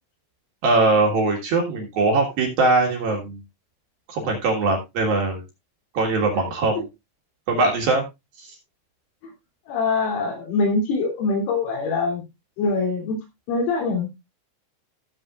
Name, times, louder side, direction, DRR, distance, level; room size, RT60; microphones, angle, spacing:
voice 1, 0.6-3.4 4.1-5.4 5.9-6.8 7.5-8.0, right 3 dB, 60° right, 1 dB, 2.9 m, -21 dB
voice 2, 9.7-12.2 12.6-13.2 13.5-14.1, left 3 dB, 80° left, 1 dB, 5.9 m, -23 dB
17.0 x 7.0 x 2.5 m, 0.22 s
omnidirectional pair, 6.0 m